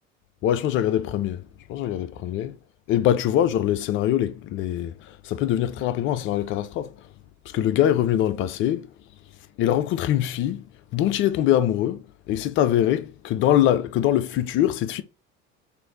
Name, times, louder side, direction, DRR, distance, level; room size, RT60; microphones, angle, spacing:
voice 1, 0.4-1.4 1.7-2.6 2.9-6.9 7.5-8.9 9.6-10.6 10.9-15.0, left 11 dB, 35° left, 0.4 m, -23 dB
3.2 x 2.6 x 4.0 m
figure-of-eight pair, 70°, 40 cm